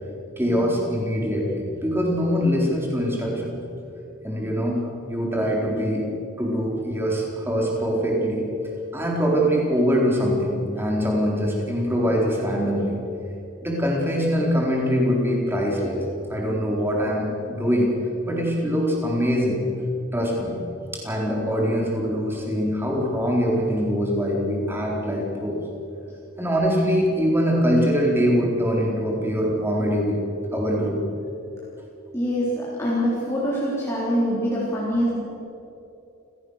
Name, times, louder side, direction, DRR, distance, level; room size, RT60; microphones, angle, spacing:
voice 1, 0.4-3.6 4.2-4.8 5.1-6.1 6.4-13.0 13.6-16.0 16.3-17.9 18.2-19.6 20.1-20.6 20.9-25.6 26.4-30.2 30.5-31.0, equal, 10° right, -2 dB, 4.1 m, -23 dB
voice 2, 32.1-35.2, equal, 10° left, -8 dB, 3.8 m, -24 dB
29.5 x 16.5 x 6.6 m, 2.9 s
head